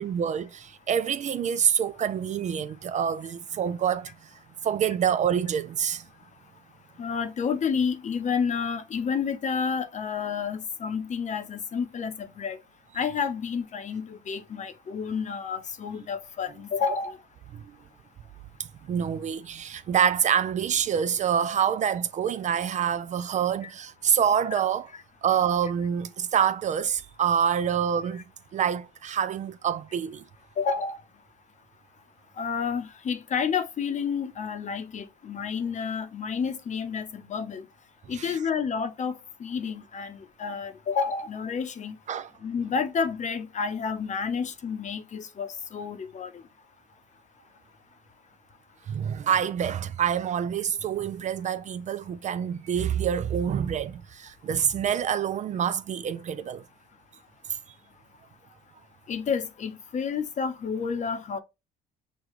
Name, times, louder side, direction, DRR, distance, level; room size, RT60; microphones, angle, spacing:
voice 1, 0.0-4.3 4.6-6.0 17.5-17.7 18.6-24.9 25.2-28.2 28.5-30.2 38.1-38.4 42.1-42.3 48.9-56.6, right 8 dB, 40° right, 0.4 m, -26 dB
voice 2, 7.0-12.6 12.9-17.2 23.6-23.7 30.6-31.0 32.4-37.6 38.1-41.9 42.4-46.3 59.1-61.4, left 6 dB, 40° left, 0.8 m, -30 dB
6.4 x 2.3 x 3.0 m
cardioid pair, 90°, 19 cm